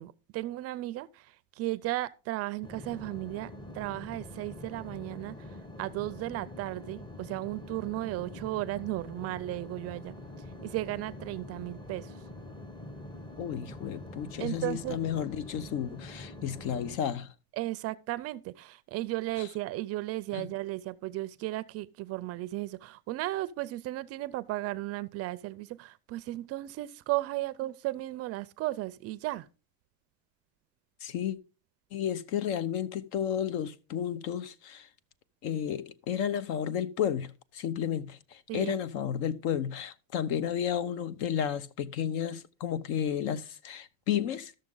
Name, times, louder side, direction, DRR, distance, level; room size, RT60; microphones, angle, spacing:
voice 1, 0.0-5.5 5.8-10.1 10.6-12.1 14.4-15.0 17.6-29.5 38.5-38.8, right 17 dB, 40° right, 0.4 m, -35 dB
sound 1, 2.6-17.0, left 1 dB, 10° left, 0.8 m, -45 dB
voice 2, 13.4-17.3 19.4-19.5 20.3-20.5 31.0-31.4 31.9-34.9 35.4-44.5, left 9 dB, 60° left, 0.9 m, -32 dB
13.0 x 6.6 x 3.8 m
cardioid pair, 145°, 39 cm